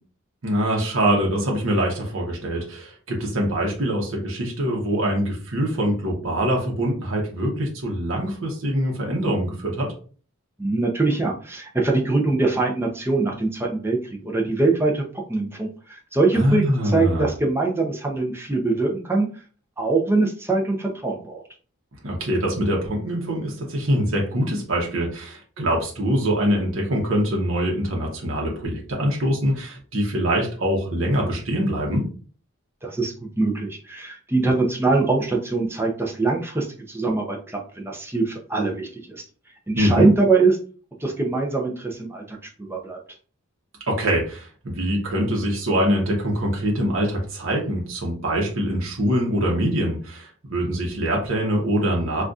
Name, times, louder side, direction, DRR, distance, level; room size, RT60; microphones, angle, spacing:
voice 1, 0.4-9.9 16.3-17.3 22.0-32.1 39.8-40.1 43.9-52.2, equal, 65° right, -1 dB, 0.8 m, -24 dB
voice 2, 10.6-19.3 19.8-21.4 32.8-39.2 39.7-40.6 41.0-43.0, right 3 dB, 10° right, 0 dB, 0.5 m, -23 dB
3.9 x 2.4 x 2.3 m, 0.40 s
head